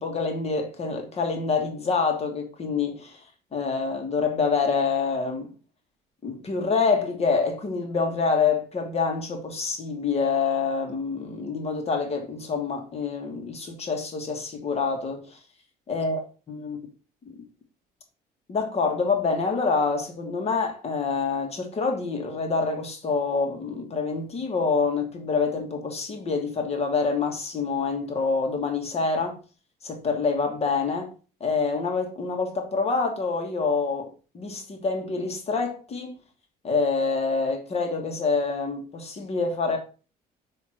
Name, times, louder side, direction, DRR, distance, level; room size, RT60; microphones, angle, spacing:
voice 1, 0.0-3.2 3.5-5.5 6.2-15.2 15.9-16.2 16.5-16.8 18.5-29.4 29.8-31.1 31.4-36.2 36.6-39.8, left 4 dB, 40° left, 1.5 m, -26 dB
7.4 x 3.0 x 4.2 m
cardioid pair, 110°, 17 cm